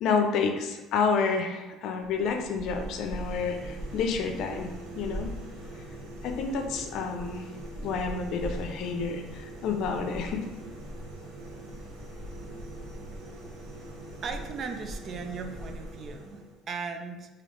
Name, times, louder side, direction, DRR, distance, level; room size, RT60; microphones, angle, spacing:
voice 1, 0.0-4.7 5.0-5.3 6.2-7.4 7.8-10.5, left 5 dB, 65° left, 5 dB, 0.5 m, -29 dB
sound 1, 2.0-16.6, right 1 dB, 90° right, 1.0 m, -41 dB
voice 2, 14.2-17.3, right 5 dB, 45° right, 6 dB, 0.4 m, -37 dB
3.3 x 2.8 x 3.8 m, 1.1 s
supercardioid pair, 95°, 0 cm